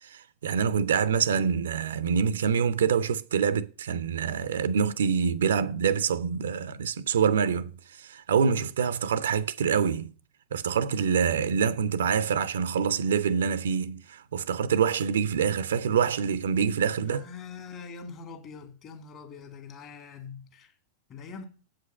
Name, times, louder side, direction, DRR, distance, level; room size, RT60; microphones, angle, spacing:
voice 1, 0.0-10.1 10.5-17.3, right 7 dB, 65° right, 0.5 m, -26 dB
voice 2, 17.0-20.7 21.1-21.4, left 5 dB, 35° left, 2.0 m, -43 dB
8.0 x 5.2 x 7.1 m
figure-of-eight pair, 90°, 0 cm